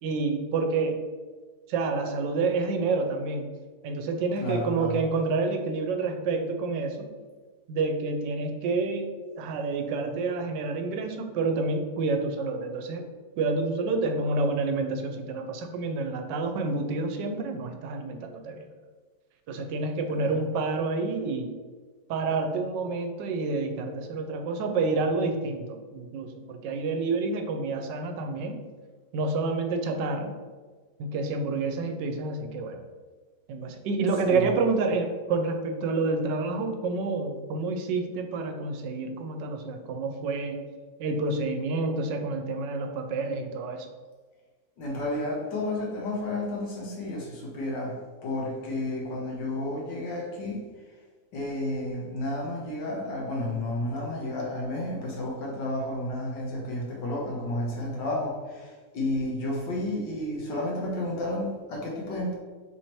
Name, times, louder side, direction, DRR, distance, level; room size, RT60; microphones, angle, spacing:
voice 1, 0.0-1.0 1.7-3.5 3.8-7.1 7.7-13.1 13.4-18.6 19.5-21.5 22.1-28.6 29.1-30.4 31.0-32.8 33.5-40.6 41.0-43.9, right 3 dB, 85° right, 6 dB, 1.3 m, -28 dB
voice 2, 4.4-5.0 20.1-20.3 34.2-34.4 44.8-48.0 48.2-50.6 51.3-62.3, left 1 dB, 85° left, -2 dB, 1.7 m, -31 dB
4.0 x 3.1 x 4.3 m, 1.4 s
omnidirectional pair, 1.9 m